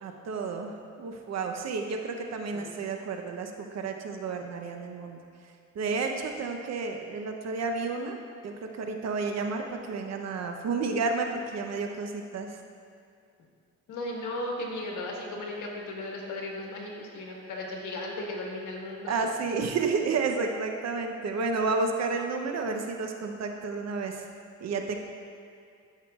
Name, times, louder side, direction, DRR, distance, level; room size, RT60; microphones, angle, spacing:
voice 1, 0.0-5.2 5.7-8.2 8.4-12.6 19.1-24.3 24.6-25.0, right 4 dB, 60° right, 4 dB, 0.8 m, -31 dB
voice 2, 13.9-19.3, left 1 dB, 75° left, -1 dB, 1.5 m, -36 dB
13.0 x 5.8 x 2.4 m, 2.4 s
cardioid pair, 90°, 30 cm